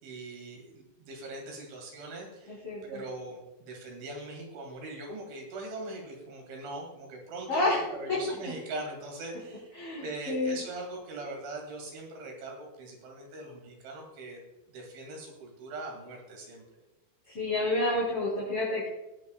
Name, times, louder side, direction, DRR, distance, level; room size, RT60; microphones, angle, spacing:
voice 1, 0.0-14.4 14.7-16.6, right 2 dB, 65° right, 1 dB, 4.7 m, -41 dB
voice 2, 2.5-3.0 7.5-7.8 8.1-8.2 9.7-10.6 17.3-18.9, left 2 dB, 30° left, -7 dB, 3.5 m, -29 dB
20.5 x 8.4 x 2.4 m, 1.0 s
omnidirectional pair, 6.0 m